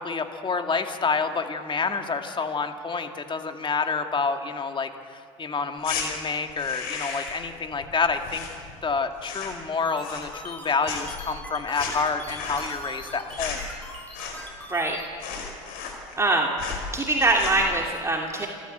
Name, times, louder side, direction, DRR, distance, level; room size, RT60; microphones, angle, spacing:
voice 1, 0.0-8.4 8.8-13.6, left 4 dB, 30° left, 6 dB, 2.1 m, -28 dB
sound 1, 5.8-6.1 6.5-7.5 7.7-8.9 9.2-9.7 10.0-10.6 10.8-14.6 14.9-15.0 15.2-16.3 16.6-16.9 17.3-17.7, left 6 dB, 70° left, 5.0 m, -35 dB
sound 2, 9.8-15.1, equal, 10° left, 7.4 m, -41 dB
voice 2, 14.7-15.0 16.2-16.5 16.9-18.5, right 2 dB, 15° right, 0 dB, 2.8 m, -23 dB
28.5 x 13.5 x 8.0 m, 2.2 s
hypercardioid pair, 75°, 16 cm